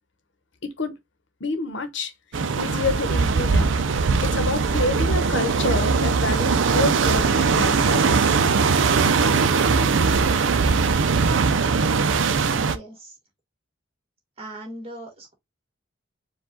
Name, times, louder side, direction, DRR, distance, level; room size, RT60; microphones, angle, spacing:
voice 1, 0.6-0.9 1.4-2.1 2.6-3.7 4.2-8.2 9.7-9.8, left 2 dB, 65° left, 0.9 m, -28 dB
sound 1, 2.3-12.8, right 5 dB, 70° right, 0.5 m, -20 dB
voice 2, 12.5-13.2 14.4-15.3, right 1 dB, 30° right, 1.8 m, -39 dB
4.7 x 2.4 x 3.8 m
head